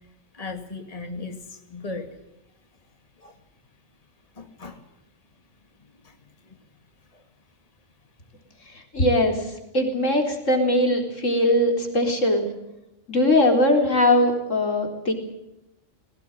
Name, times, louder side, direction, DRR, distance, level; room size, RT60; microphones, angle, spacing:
voice 1, 0.3-2.1 3.2-3.3 4.4-4.8 6.0-6.1 7.1-7.2, left 3 dB, 30° left, 6 dB, 2.2 m, -36 dB
voice 2, 8.9-9.5 9.7-12.5 13.1-15.1, left 1 dB, 85° left, 3 dB, 4.4 m, -20 dB
21.5 x 18.0 x 9.9 m, 0.88 s
omnidirectional pair, 1.3 m